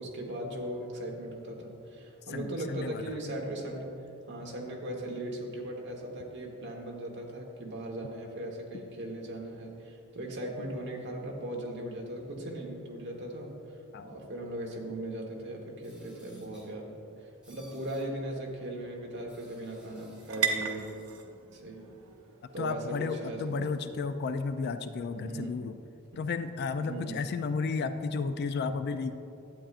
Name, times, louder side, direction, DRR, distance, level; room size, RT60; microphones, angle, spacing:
voice 1, 0.0-3.9 4.3-16.9 17.2-20.9 21.5-21.9 22.5-23.8 25.1-25.6 26.1-26.3 26.8-27.3, right 1 dB, 55° right, 0 dB, 1.3 m, -38 dB
voice 2, 2.3-3.1 13.9-14.1 22.6-25.7 26.2-29.1, left 4 dB, 50° left, 9 dB, 0.3 m, -33 dB
sound 1, 15.8-16.7 17.4-18.1 19.3-20.4 20.9-21.1, equal, 5° right, 2.1 m, -59 dB
sound 2, 17.0-24.7, right 7 dB, 90° right, 0.8 m, -40 dB
11.5 x 8.5 x 2.5 m, 2.7 s
head